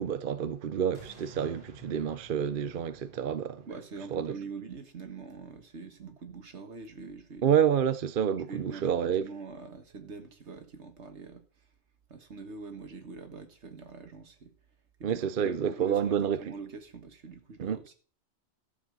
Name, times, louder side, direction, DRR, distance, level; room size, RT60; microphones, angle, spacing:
voice 1, 0.0-3.6 4.1-4.3 7.4-9.2 15.0-16.4 17.6-17.8, right 8 dB, 55° right, 0.7 m, -28 dB
sound 1, 0.9-6.0 6.5-6.6, right 3 dB, 35° right, 2.9 m, -54 dB
voice 2, 3.7-7.5 8.4-11.4 12.1-14.5 15.0-17.9, right 4 dB, 70° right, 1.8 m, -44 dB
13.0 x 7.0 x 6.3 m
omnidirectional pair, 1.2 m